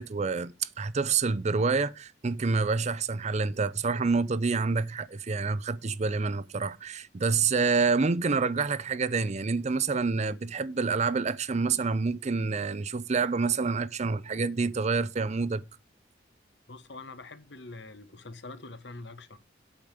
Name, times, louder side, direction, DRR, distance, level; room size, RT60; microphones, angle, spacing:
voice 1, 0.0-15.6, right 4 dB, 40° right, 0.5 m, -27 dB
voice 2, 16.7-19.4, left 3 dB, 70° left, 1.1 m, -44 dB
8.7 x 5.1 x 6.7 m
head